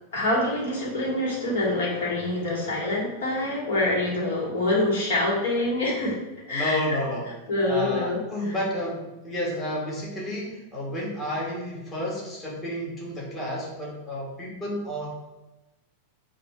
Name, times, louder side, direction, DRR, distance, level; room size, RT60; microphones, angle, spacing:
voice 1, 0.1-6.2 6.5-7.0 7.5-8.6, left 1 dB, 60° left, -3 dB, 2.2 m, -26 dB
voice 2, 6.5-7.3 7.6-15.1, left 1 dB, 20° left, -4 dB, 1.8 m, -31 dB
8.8 x 2.9 x 4.5 m, 1.1 s
figure-of-eight pair, 90°, 0 cm